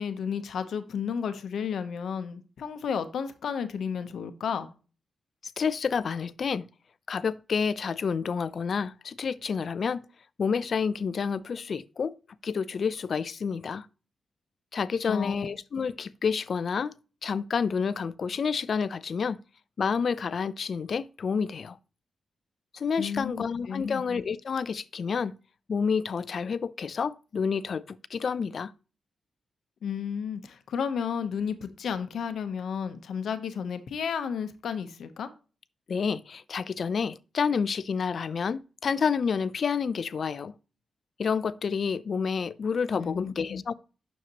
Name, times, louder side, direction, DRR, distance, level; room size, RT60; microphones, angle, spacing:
voice 1, 0.0-4.7 15.1-15.5 23.0-24.0 29.8-35.3 43.0-43.6, left 7 dB, 85° left, 0.8 m, -32 dB
voice 2, 5.6-6.7 7.1-10.0 10.4-12.1 12.4-13.9 14.7-16.9 17.2-19.4 19.8-21.8 22.7-25.3 25.7-28.7 35.9-40.5 41.2-43.7, left 6 dB, 60° left, 0.5 m, -29 dB
9.3 x 6.5 x 2.9 m
cardioid pair, 95°, 0 cm